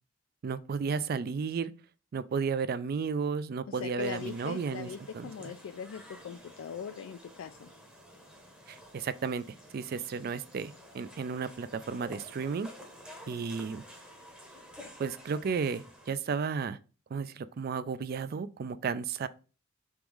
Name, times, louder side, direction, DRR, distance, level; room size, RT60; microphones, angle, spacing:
voice 1, 0.4-1.7 2.1-5.3 8.7-9.4 9.7-12.7 13.3-13.8 15.0-16.8 17.1-19.3, right 5 dB, 45° right, 0.3 m, -33 dB
voice 2, 3.7-7.7, left 7 dB, 80° left, 0.3 m, -41 dB
sound 1, 4.0-16.1, equal, 5° right, 0.8 m, -51 dB
3.6 x 3.0 x 4.7 m
head